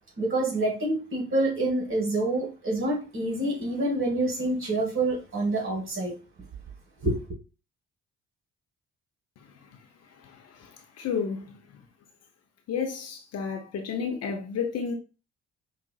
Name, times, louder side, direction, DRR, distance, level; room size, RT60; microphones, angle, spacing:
voice 1, 0.2-6.1 7.0-7.2, right 2 dB, 35° right, 2.1 m, -27 dB
voice 2, 10.2-11.6 12.7-14.9, left 6 dB, 45° left, 0.8 m, -32 dB
5.3 x 2.4 x 2.3 m
figure-of-eight pair, 45°, 34 cm